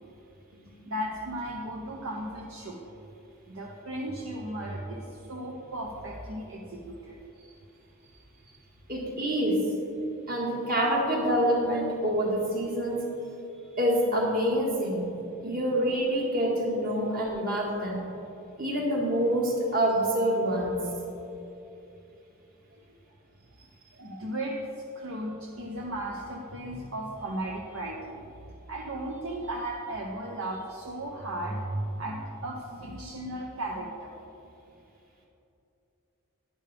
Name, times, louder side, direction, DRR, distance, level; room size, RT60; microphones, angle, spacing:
voice 1, 0.8-2.8 3.5-7.6 8.0-8.7 13.5-13.8 15.4-15.7 22.9-23.0 23.9-28.2 28.7-34.2, right 1 dB, 60° right, -1 dB, 0.8 m, -36 dB
voice 2, 8.9-9.7 10.3-13.0 13.8-15.1 15.4-18.0 18.6-20.8, equal, 40° right, -2 dB, 1.9 m, -26 dB
11.5 x 10.0 x 3.5 m, 2.9 s
head